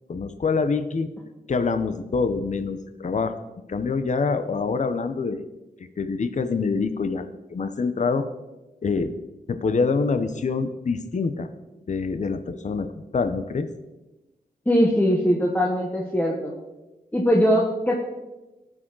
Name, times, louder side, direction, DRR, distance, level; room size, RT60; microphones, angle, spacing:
voice 1, 0.1-1.1 1.5-3.4 3.7-5.4 6.0-8.2 8.8-9.1 9.5-11.5 11.9-13.7, left 4 dB, 50° left, 10 dB, 0.7 m, -25 dB
voice 2, 14.7-16.5 17.1-18.0, equal, 10° left, -1 dB, 1.2 m, -21 dB
18.5 x 6.3 x 3.9 m, 1.1 s
wide cardioid pair, 130°, 16 cm